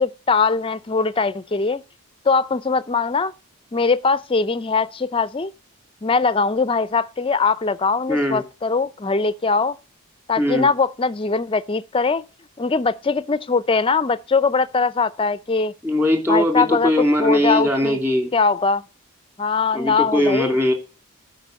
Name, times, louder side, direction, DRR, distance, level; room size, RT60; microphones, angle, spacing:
voice 1, 0.0-1.8 2.3-3.3 3.7-5.5 6.0-9.8 10.3-12.2 12.6-15.7 16.3-16.9 17.2-18.0 18.3-18.8 19.4-20.5, left 4 dB, 25° left, 0.5 m, -21 dB
voice 2, 8.1-8.4 10.4-10.7 15.8-18.3 19.7-20.7, left 1 dB, 10° right, 2.2 m, -20 dB
12.5 x 5.3 x 7.5 m
head